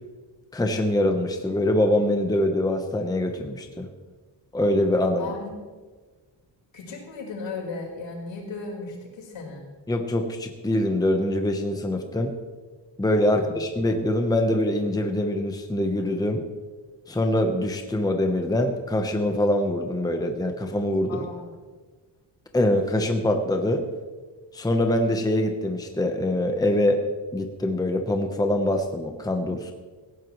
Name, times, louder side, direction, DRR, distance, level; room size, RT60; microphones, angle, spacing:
voice 1, 0.5-3.9 4.5-5.3 9.9-12.3 13.0-16.4 17.1-21.3 22.5-23.8 24.5-27.0 27.3-29.7, left 1 dB, 10° left, 4 dB, 0.9 m, -24 dB
voice 2, 5.2-5.5 6.7-9.7 13.3-13.6 21.1-21.5, left 3 dB, 80° left, -2 dB, 4.7 m, -36 dB
18.5 x 16.0 x 3.1 m, 1.3 s
wide cardioid pair, 160°, 45 cm